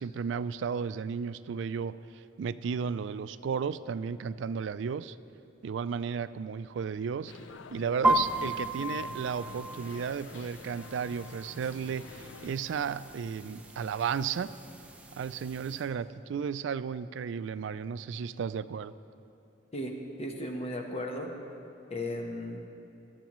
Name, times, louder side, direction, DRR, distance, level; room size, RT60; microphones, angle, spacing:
voice 1, 0.0-1.9 2.4-5.2 5.6-7.3 7.7-14.5 15.2-18.9, right 6 dB, 65° right, 15 dB, 0.3 m, -34 dB
sound 1, 7.3-12.6, left 5 dB, 70° left, 0.4 m, -49 dB
sound 2, 8.0-15.9, right 1 dB, 5° right, 0.7 m, -35 dB
voice 2, 19.7-21.3 21.9-22.6, left 1 dB, 35° left, 2 dB, 1.1 m, -35 dB
18.5 x 12.5 x 3.1 m, 2.7 s
head